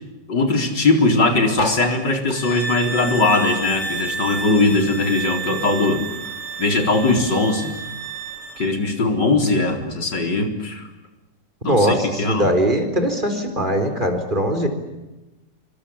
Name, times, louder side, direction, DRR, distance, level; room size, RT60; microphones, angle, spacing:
voice 1, 0.3-6.0 6.6-7.8 8.6-10.9 11.6-12.5, left 3 dB, 85° left, 5 dB, 4.8 m, -20 dB
sound 1, 1.5-4.3 4.6-6.1 6.6-6.7 6.9-7.0 7.2-7.6 8.4-8.5, left 2 dB, 40° left, 3.9 m, -33 dB
sound 2, 2.3-8.7, right 4 dB, 45° right, 7.7 m, -30 dB
voice 2, 11.7-14.7, equal, 25° right, 6 dB, 4.7 m, -20 dB
27.5 x 25.0 x 8.6 m, 1.0 s
omnidirectional pair, 1.9 m